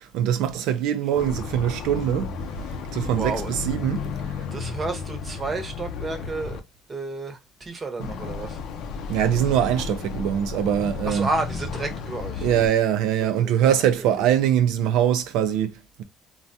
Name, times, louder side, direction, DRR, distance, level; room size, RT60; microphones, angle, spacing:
voice 1, 0.0-2.3 2.9-4.4 8.0-8.1 9.1-11.3 12.4-16.0, right 10 dB, 80° right, 0.5 m, -23 dB
sound 1, 1.2-6.6 8.0-12.7, left 5 dB, 70° left, 0.5 m, -33 dB
voice 2, 3.2-3.5 4.5-6.6 6.9-8.6 11.0-12.5 13.2-14.1, right 3 dB, 25° right, 0.9 m, -31 dB
3.3 x 2.2 x 2.6 m
cardioid pair, 120°, 0 cm